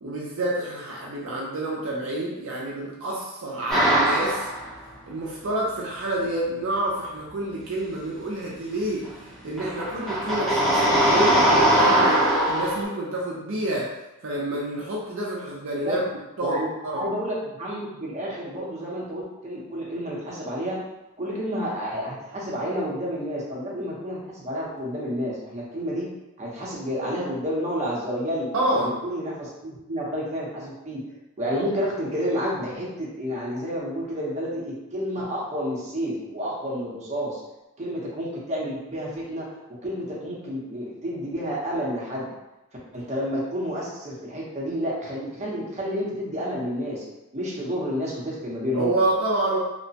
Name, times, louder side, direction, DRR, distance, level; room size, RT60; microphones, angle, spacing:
voice 1, 0.0-4.5 5.1-9.0 9.4-13.9 14.2-16.0 16.4-16.6 16.8-17.0 28.5-28.9 48.7-49.6, right 1 dB, 65° right, -4 dB, 0.5 m, -28 dB
sound 1, 3.7-4.7 9.1-9.2 9.6-12.8, right 1 dB, ahead, 0.7 m, -20 dB
voice 2, 16.4-20.8 21.2-26.1 26.4-31.0 31.4-37.4 37.8-39.5 39.8-42.3 42.9-47.0 47.3-48.9, equal, 35° right, -5 dB, 0.8 m, -30 dB
2.9 x 2.1 x 2.7 m, 0.95 s
head